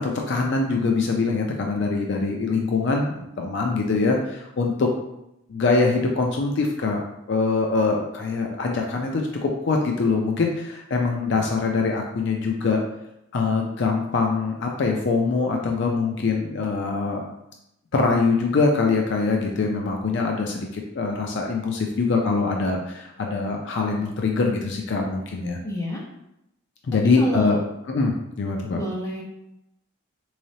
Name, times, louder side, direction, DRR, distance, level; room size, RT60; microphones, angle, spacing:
voice 1, 0.0-4.9 5.5-7.0 7.3-12.8 13.3-17.2 17.9-25.6 26.9-27.6 27.9-28.8, left 4 dB, 55° left, 1 dB, 0.4 m, -23 dB
voice 2, 25.6-26.0 27.2-27.6 28.7-29.2, left 1 dB, 15° left, -4 dB, 0.7 m, -29 dB
3.8 x 3.2 x 2.7 m, 0.84 s
head